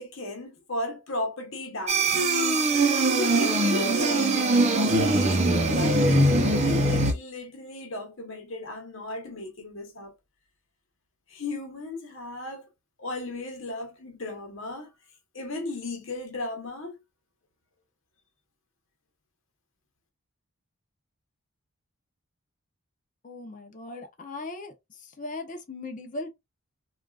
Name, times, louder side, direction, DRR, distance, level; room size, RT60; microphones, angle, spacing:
voice 1, 0.0-2.1 3.2-10.1 11.3-12.7 13.0-14.9 15.3-17.0, left 2 dB, 60° left, 1.1 m, -35 dB
sound 1, 1.9-7.1, right 2 dB, 30° right, 0.6 m, -22 dB
voice 2, 23.2-24.7 25.2-26.3, left 2 dB, 35° left, 0.6 m, -38 dB
3.7 x 2.4 x 2.3 m
head